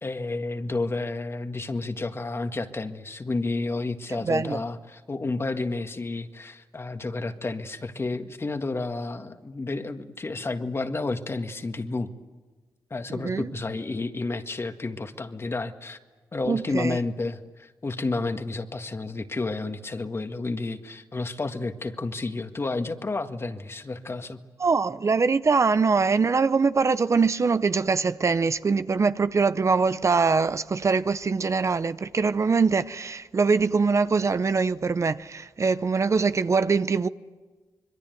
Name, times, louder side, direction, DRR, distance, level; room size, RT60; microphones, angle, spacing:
voice 1, 0.0-12.1 12.9-16.0 16.3-24.4, left 3 dB, 35° left, 1.8 m, -31 dB
voice 2, 4.2-4.6 13.1-13.5 16.4-17.0 24.6-37.1, right 4 dB, 45° right, 0.8 m, -23 dB
26.0 x 22.0 x 9.3 m
cardioid pair, 60°, 7 cm